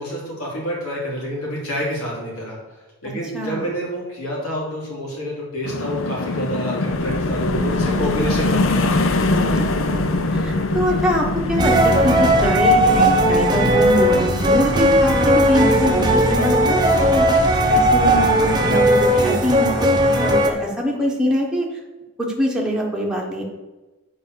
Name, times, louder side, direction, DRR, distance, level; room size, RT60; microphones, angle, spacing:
voice 1, 0.0-9.0, equal, 90° left, -4 dB, 3.4 m, -28 dB
voice 2, 3.0-3.7 7.4-8.4 9.3-17.4 17.7-21.7 22.2-23.4, equal, 5° right, -2 dB, 1.3 m, -24 dB
sound 1, 5.6-19.1, left 2 dB, 65° left, 0.6 m, -24 dB
sound 2, 6.9-19.0, right 1 dB, 20° left, 1.8 m, -33 dB
sound 3, 11.6-20.5, right 1 dB, 20° right, 0.8 m, -17 dB
7.7 x 4.9 x 6.9 m, 1.1 s
head